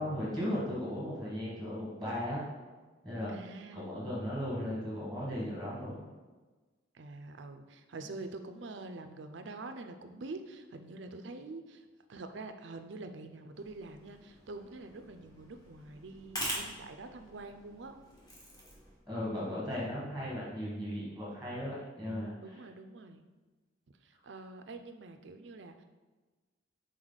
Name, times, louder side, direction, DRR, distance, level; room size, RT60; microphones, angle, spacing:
voice 1, 0.0-2.4 3.0-3.3 3.7-6.1 19.1-22.5, equal, ahead, -7 dB, 1.5 m, -36 dB
voice 2, 3.3-4.0 5.4-6.1 6.9-18.0 22.4-23.2 24.0-25.8, right 3 dB, 65° right, 8 dB, 0.5 m, -46 dB
sound 1, 13.5-19.0, equal, 20° left, 1.4 m, -44 dB
6.3 x 4.1 x 4.0 m, 1.3 s
head